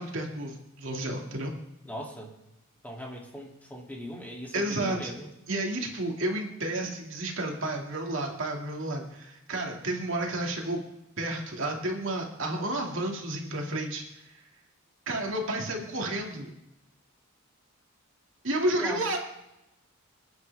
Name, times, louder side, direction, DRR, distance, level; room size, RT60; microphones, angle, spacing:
voice 1, 0.0-1.5 4.5-5.1 5.5-10.8 11.2-14.0 15.1-16.5 18.4-19.2, right 1 dB, 60° right, 1 dB, 2.4 m, -31 dB
voice 2, 1.8-2.3 2.8-5.3 18.7-19.0, equal, 10° left, -3 dB, 2.9 m, -39 dB
27.0 x 9.6 x 3.6 m, 0.89 s
head